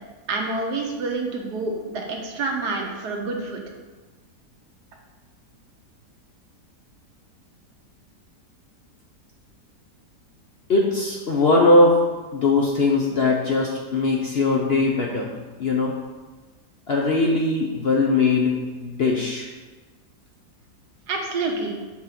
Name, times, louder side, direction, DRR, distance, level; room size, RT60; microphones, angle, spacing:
voice 1, 0.3-3.6 21.1-21.8, right 3 dB, 75° right, 1 dB, 1.6 m, -28 dB
voice 2, 10.7-12.0 12.3-15.3 15.6-16.0 16.9-19.5, left 3 dB, 55° left, -1 dB, 0.7 m, -20 dB
7.4 x 3.9 x 5.8 m, 1.3 s
omnidirectional pair, 1.8 m